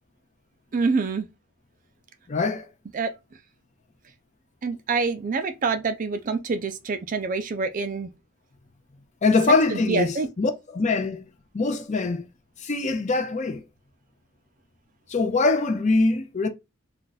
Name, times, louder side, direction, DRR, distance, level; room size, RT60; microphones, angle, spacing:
voice 1, 0.7-1.3 2.9-3.1 4.6-8.1 9.7-10.3, right 4 dB, 40° right, 0.4 m, -26 dB
voice 2, 2.3-2.7 9.2-11.2 11.5-12.2 12.6-13.6 15.1-16.5, left 3 dB, 35° left, 0.5 m, -23 dB
2.5 x 2.2 x 3.9 m
head